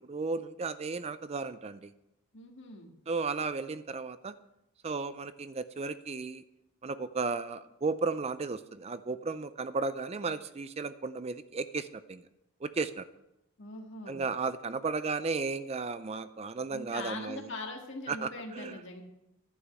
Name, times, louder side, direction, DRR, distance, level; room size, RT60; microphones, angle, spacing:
voice 1, 0.1-1.9 3.1-4.3 4.8-6.4 6.8-12.2 12.6-13.0 14.1-17.5 18.1-19.0, right 4 dB, 30° right, 13 dB, 0.4 m, -34 dB
voice 2, 2.3-2.9 13.6-14.2 16.7-19.0, left 2 dB, 55° left, 2 dB, 1.8 m, -42 dB
11.0 x 6.3 x 8.3 m, 0.88 s
head